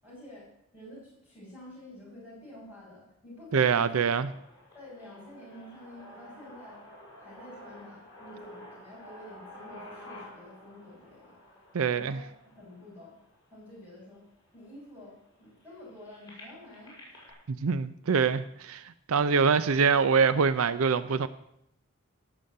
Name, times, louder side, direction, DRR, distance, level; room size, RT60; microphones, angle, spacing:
voice 1, 0.0-4.0 4.3-4.4 4.7-6.8 7.2-12.2 12.5-13.1 13.5-14.2 14.5-17.5, left 1 dB, 10° right, -6 dB, 7.1 m, -49 dB
voice 2, 3.5-4.3 11.7-12.2 17.5-21.3, right 5 dB, 75° right, 15 dB, 0.5 m, -24 dB
sound 1, 3.9-13.8 14.5-14.6 14.8-17.3, left 1 dB, 20° left, 6.4 m, -50 dB
16.5 x 7.0 x 7.8 m, 0.77 s
head